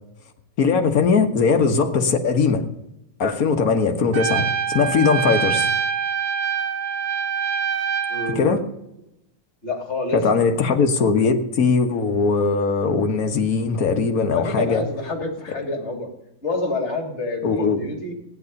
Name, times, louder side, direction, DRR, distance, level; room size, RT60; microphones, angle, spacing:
voice 1, 0.6-2.6 3.2-5.7 8.4-8.6 10.1-14.9 17.4-17.8, left 5 dB, 55° left, 5 dB, 1.7 m, -20 dB
Trumpet, 4.1-8.4, right 7 dB, 65° right, 1.2 m, -24 dB
voice 2, 8.1-8.6 9.6-10.2 14.3-16.1 16.4-18.1, left 2 dB, 40° left, 3 dB, 3.0 m, -28 dB
15.5 x 9.8 x 5.3 m, 0.85 s
omnidirectional pair, 1.9 m